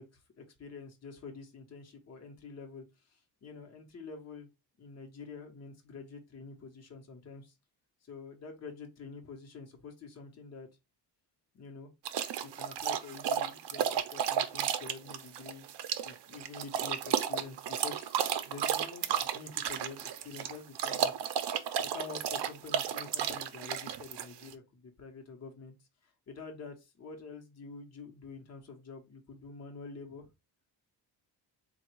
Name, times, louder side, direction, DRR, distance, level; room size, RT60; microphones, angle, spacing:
voice 1, 0.0-4.5 4.8-7.5 8.0-10.7 11.5-11.9 12.4-15.6 16.0-21.1 21.9-25.7 26.0-30.3, left 4 dB, 35° left, 2 dB, 1.0 m, -47 dB
sound 1, 12.1-24.5, right 9 dB, 65° right, 0.6 m, -33 dB
3.8 x 2.3 x 4.4 m, 0.24 s
cardioid pair, 135°, 43 cm